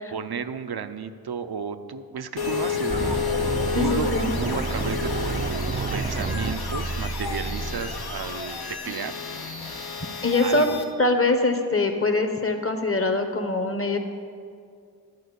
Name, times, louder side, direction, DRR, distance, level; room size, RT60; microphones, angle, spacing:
voice 1, 0.1-9.1 10.4-10.8, right 6 dB, 80° right, 10 dB, 0.5 m, -33 dB
sound 1, 2.4-10.8, left 5 dB, 75° left, 0.8 m, -31 dB
sound 2, 2.9-8.9, right 3 dB, 25° right, 0.4 m, -30 dB
voice 2, 3.7-4.3 10.2-10.7 11.0-14.0, left 2 dB, 35° left, 6 dB, 0.9 m, -23 dB
10.5 x 4.5 x 8.0 m, 2.2 s
wide cardioid pair, 45°, 37 cm